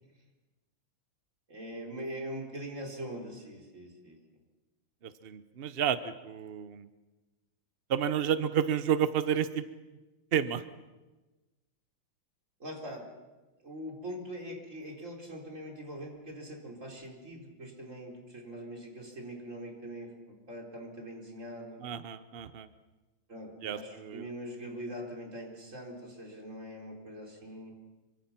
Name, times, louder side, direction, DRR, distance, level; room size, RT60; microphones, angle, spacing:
voice 1, 1.5-4.2 12.6-13.1 13.6-21.8 23.3-27.7, equal, 35° right, 1 dB, 4.5 m, -42 dB
voice 2, 5.0-6.9 7.9-9.6 10.3-10.6 21.8-22.7 23.6-24.3, right 8 dB, 70° right, 12 dB, 0.5 m, -31 dB
26.5 x 24.5 x 5.9 m, 1.2 s
omnidirectional pair, 2.3 m